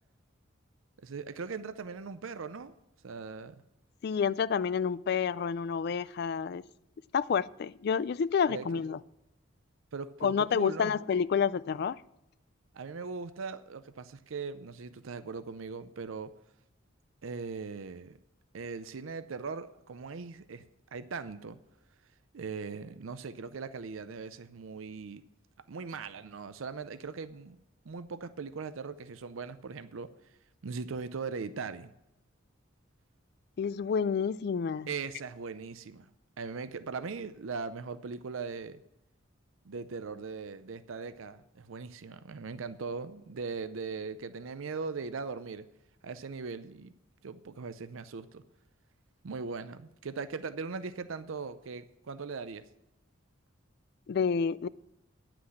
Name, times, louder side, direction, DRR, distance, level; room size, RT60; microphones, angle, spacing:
voice 1, 1.0-2.7 3.0-3.6 8.5-8.8 9.9-11.0 12.7-16.3 17.2-18.2 18.5-20.6 20.9-21.6 22.3-25.2 25.7-27.6 27.8-30.4 30.6-31.9 34.9-36.1 36.4-38.8 39.6-45.6 46.0-46.9 47.2-48.4 49.2-52.6, right 4 dB, 80° right, 0.5 m, -39 dB
voice 2, 4.0-6.6 7.1-9.0 10.2-12.0 33.6-34.9 54.1-54.7, left 6 dB, 50° left, 0.3 m, -29 dB
9.7 x 6.0 x 8.5 m
head